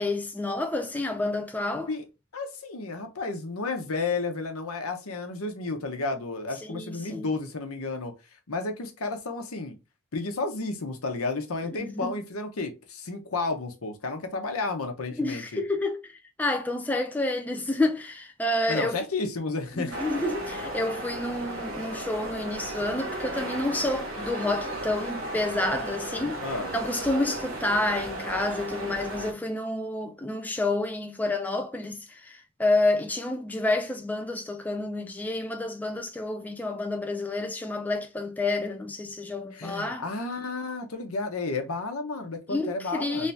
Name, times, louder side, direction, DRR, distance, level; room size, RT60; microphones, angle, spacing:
voice 1, 0.0-1.9 6.6-7.3 11.7-12.2 15.2-19.0 19.7-26.4 26.7-40.1 42.5-43.3, left 2 dB, 10° left, 0.4 m, -29 dB
voice 2, 2.3-8.1 8.5-9.7 10.1-15.6 18.7-20.0 26.4-26.7 39.5-43.3, left 3 dB, 80° left, 0.9 m, -32 dB
sound 1, 19.9-29.3, right 1 dB, 70° right, 1.0 m, -35 dB
3.2 x 2.8 x 3.3 m
head